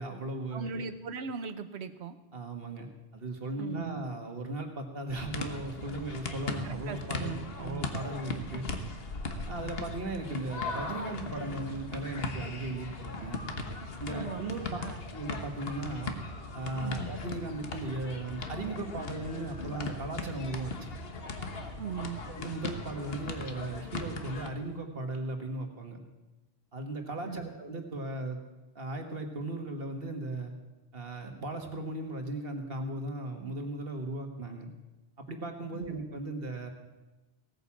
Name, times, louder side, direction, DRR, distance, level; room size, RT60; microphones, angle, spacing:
voice 1, 0.0-0.9 2.3-8.7 9.5-13.4 14.0-14.6 15.1-16.2 16.5-20.9 22.3-26.0 26.7-28.4 28.8-30.5 30.9-34.7 35.3-36.7, right 2 dB, 60° right, 4 dB, 1.8 m, -37 dB
voice 2, 0.5-2.2 3.6-4.0 6.6-8.0 14.1-15.0 16.8-17.1 21.8-22.2 27.2-27.5 35.7-36.0, right 6 dB, 85° right, 11 dB, 1.2 m, -39 dB
sound 1, 5.1-24.5, left 3 dB, 65° left, 1.5 m, -38 dB
17.5 x 9.4 x 7.2 m, 1.1 s
omnidirectional pair, 1.1 m